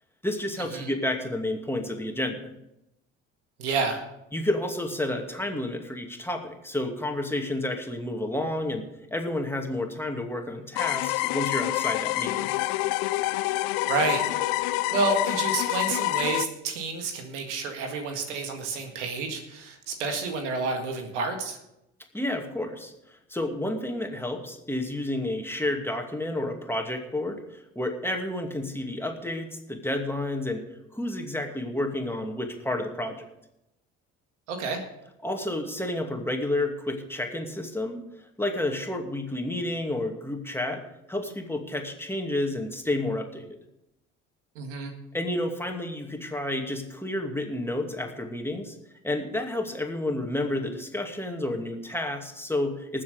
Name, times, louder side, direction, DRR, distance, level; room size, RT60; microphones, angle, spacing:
voice 1, 0.2-2.4 4.3-8.9 9.1-12.5 22.1-30.6 30.9-33.3 35.2-40.8 41.1-43.6 45.1-48.8 49.0-53.0, left 1 dB, 5° left, 3 dB, 2.5 m, -30 dB
voice 2, 3.6-4.0 13.9-14.2 14.9-21.6 34.5-34.8 44.6-44.9, right 3 dB, 85° right, 5 dB, 1.9 m, -29 dB
sound 1, 10.8-16.4, left 17 dB, 70° left, 0.6 m, -27 dB
19.5 x 7.4 x 5.2 m, 0.86 s
hypercardioid pair, 60°, 35 cm